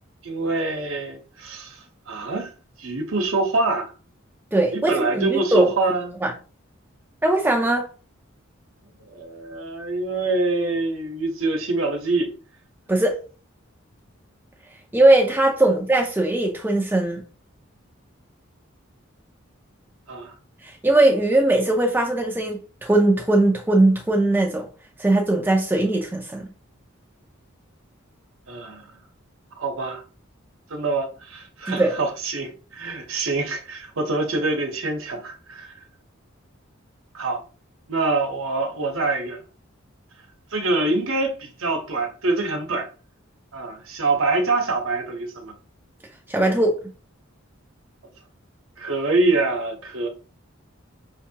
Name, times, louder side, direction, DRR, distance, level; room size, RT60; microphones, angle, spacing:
voice 1, 0.2-2.5 2.8-3.9 4.7-6.1 9.0-12.3 15.7-15.8 20.1-20.4 28.5-29.0 29.6-30.0 30.7-35.7 37.1-37.4 37.9-39.4 40.5-42.9 43.5-45.5 48.8-50.1, right 2 dB, 80° right, 1.0 m, -25 dB
voice 2, 4.5-5.7 6.2-6.3 7.2-7.9 12.9-13.2 14.9-17.2 20.6-24.7 25.0-26.5 31.7-31.9 46.3-46.7, right 2 dB, 10° right, 0.4 m, -20 dB
5.6 x 2.7 x 2.8 m
head